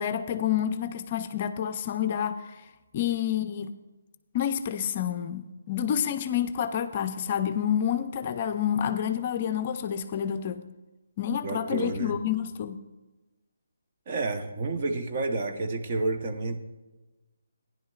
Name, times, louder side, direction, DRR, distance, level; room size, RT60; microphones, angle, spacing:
voice 1, 0.0-2.7 2.9-3.7 4.3-10.6 11.2-12.8, left 9 dB, 35° left, 9 dB, 0.5 m, -29 dB
voice 2, 11.4-12.2 14.1-16.6, right 3 dB, 40° right, 5 dB, 0.9 m, -30 dB
15.5 x 10.5 x 2.4 m, 1.1 s
hypercardioid pair, 155°, 0 cm